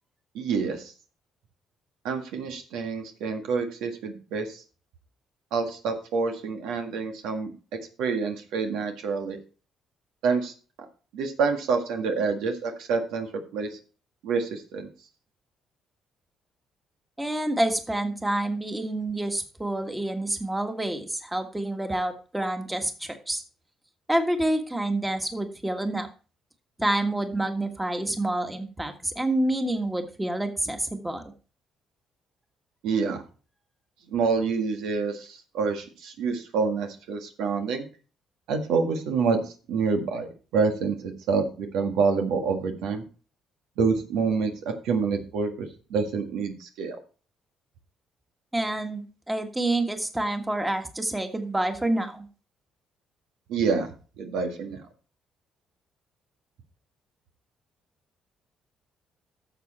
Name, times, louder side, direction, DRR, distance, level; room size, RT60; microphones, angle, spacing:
voice 1, 0.4-0.9 2.0-4.6 5.5-7.5 8.0-9.4 10.2-10.5 11.1-13.7 14.2-14.9 32.8-33.2 34.1-37.9 38.5-39.4 39.7-43.0 43.8-47.0 53.5-53.9 54.2-54.8, right 5 dB, 90° right, 5 dB, 1.8 m, -27 dB
voice 2, 17.2-23.4 24.1-26.1 26.8-31.3 48.5-52.3, right 1 dB, 10° right, 6 dB, 1.6 m, -28 dB
12.0 x 7.0 x 4.3 m, 0.36 s
cardioid pair, 100°, 0 cm